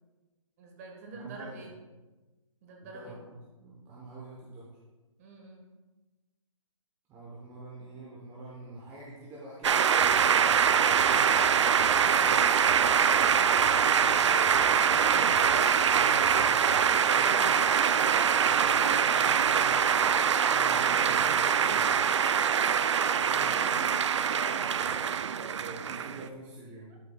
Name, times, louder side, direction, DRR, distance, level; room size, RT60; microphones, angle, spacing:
voice 1, 0.6-1.7 2.6-3.2 5.2-5.7 23.3-23.9 24.4-26.4, right 2 dB, 25° right, 1 dB, 1.5 m, -47 dB
voice 2, 1.1-1.6 2.8-4.8 7.1-12.9 13.5-15.3 15.8-17.6 18.3-22.1 23.3-23.7 25.6-27.0, right 2 dB, 10° right, -6 dB, 0.9 m, -46 dB
sound 1, 9.6-26.3, right 7 dB, 60° right, 0.4 m, -24 dB
sound 2, 10.0-17.1, left 4 dB, 25° left, 0.8 m, -48 dB
sound 3, 10.6-20.1, right 2 dB, 90° right, 1.2 m, -48 dB
12.0 x 6.6 x 2.3 m, 1.2 s
hypercardioid pair, 160°, 18 cm